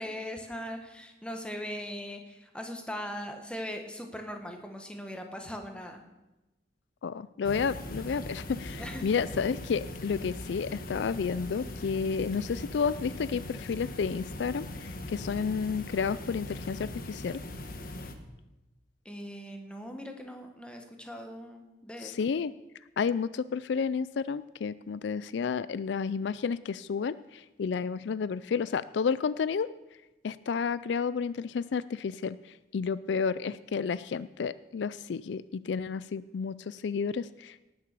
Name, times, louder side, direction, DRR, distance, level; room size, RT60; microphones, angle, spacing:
voice 1, 0.0-6.0 8.8-9.1 19.0-22.3, equal, 5° left, 4 dB, 1.5 m, -40 dB
voice 2, 7.0-17.4 22.0-22.5 23.0-29.7 30.2-32.4 32.7-37.7, left 6 dB, 70° left, 16 dB, 0.4 m, -31 dB
sound 1, 7.4-18.2, left 1 dB, 50° left, 1.3 m, -40 dB
18.5 x 7.0 x 6.8 m, 1.0 s
head